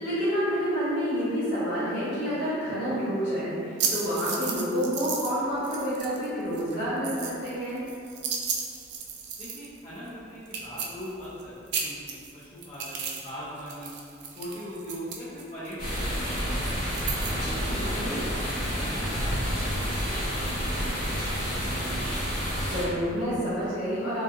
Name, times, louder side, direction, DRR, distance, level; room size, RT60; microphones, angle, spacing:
voice 1, 0.0-7.8 17.7-18.2 22.6-24.2, equal, 85° left, -14 dB, 1.3 m, -29 dB
sound 1, 3.8-5.4 5.6-6.3 6.5-9.8 10.1-10.2 10.5-11.4 11.7-13.3 13.6-17.3, right 6 dB, 60° right, 0.3 m, -34 dB
voice 2, 9.4-11.5 11.8-14.0 14.3-18.2 18.6-21.7, equal, 30° left, -12 dB, 0.5 m, -41 dB
sound 2, 15.8-22.8, equal, 55° left, 1.4 m, -29 dB
2.5 x 2.4 x 2.6 m, 2.5 s
head